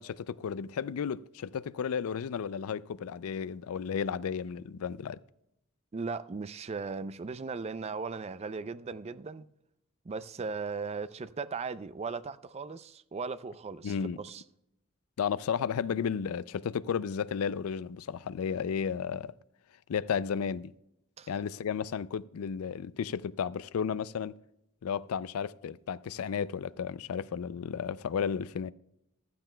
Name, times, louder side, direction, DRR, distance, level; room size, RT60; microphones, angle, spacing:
voice 1, 0.0-5.2 13.8-14.2 15.2-19.3 19.9-20.7 21.3-24.3 24.8-28.7, left 7 dB, 85° left, 0.4 m, -33 dB
voice 2, 5.9-9.5 10.0-14.4 21.2-21.3, right 4 dB, 30° right, 0.4 m, -37 dB
15.0 x 12.5 x 2.2 m
head